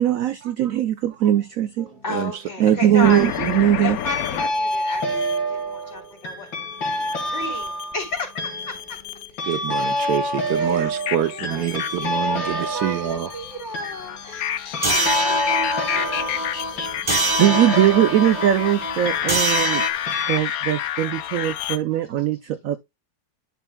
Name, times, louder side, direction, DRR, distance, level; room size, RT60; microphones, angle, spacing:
voice 1, 0.0-1.9 2.6-4.0 17.0-19.9 20.2-22.8, right 11 dB, 85° right, 0.7 m, -20 dB
sound 1, 1.8-2.3 3.1-3.7 4.1-19.8 20.1-20.4, equal, 90° left, 2.7 m, -28 dB
voice 2, 2.0-3.3 3.8-5.2 5.5-6.7 7.3-8.3 8.6-9.0 9.3-10.0 10.6-10.8 11.3-16.5 17.4-18.5, left 2 dB, 40° left, 3.5 m, -34 dB
sound 2, 3.0-5.4 6.9-8.2 8.5-9.4 9.8-21.8, left 10 dB, 65° left, 1.0 m, -30 dB
voice 3, 9.5-13.3, right 11 dB, 65° right, 1.1 m, -26 dB
sound 3, 14.8-19.9, right 1 dB, 35° right, 0.4 m, -25 dB
11.0 x 5.6 x 2.2 m
omnidirectional pair, 2.0 m